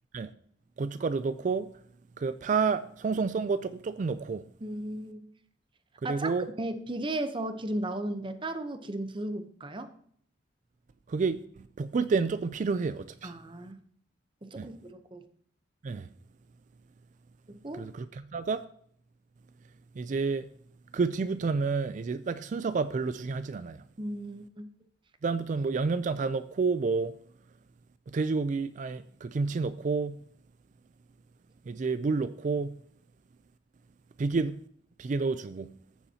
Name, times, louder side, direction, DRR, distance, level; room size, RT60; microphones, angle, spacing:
voice 1, 0.8-1.7 2.2-4.5 6.0-6.5 11.1-11.4 11.8-13.3 14.6-14.7 15.8-16.1 17.8-18.6 20.0-20.5 20.9-23.8 25.2-27.1 28.1-30.2 31.7-32.8 34.2-34.6 35.0-35.7, right 4 dB, 45° right, 0.3 m, -29 dB
voice 2, 4.6-5.3 6.0-9.9 13.2-13.8 14.4-15.3 17.5-17.9 24.0-24.7, right 1 dB, 30° right, 0.8 m, -35 dB
14.5 x 6.9 x 2.8 m
head